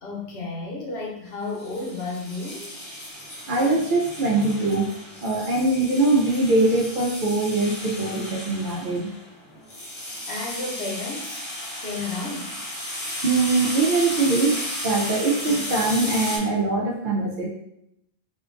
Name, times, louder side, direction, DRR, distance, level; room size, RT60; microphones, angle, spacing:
voice 1, 0.0-2.7 10.3-11.5 11.8-12.6, left 3 dB, 85° left, -1 dB, 1.1 m, -32 dB
sound 1, 1.6-16.4, left 1 dB, 30° left, 0.8 m, -34 dB
voice 2, 3.5-4.9 5.2-9.1 13.2-17.5, right 3 dB, 60° right, -1 dB, 0.7 m, -22 dB
4.4 x 2.3 x 2.5 m, 0.76 s
omnidirectional pair, 1.0 m